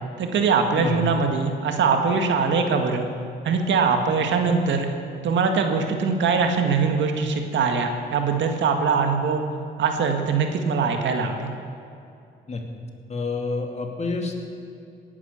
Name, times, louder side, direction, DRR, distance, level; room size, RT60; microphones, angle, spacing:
voice 1, 0.2-3.1 3.4-4.9 5.2-9.4 9.8-11.5, right 5 dB, 70° right, 5 dB, 2.0 m, -22 dB
voice 2, 0.7-1.1 12.5-12.6 13.1-14.4, left 3 dB, 35° left, 3 dB, 2.5 m, -28 dB
18.0 x 11.0 x 7.3 m, 2.6 s
cardioid pair, 90°, 20 cm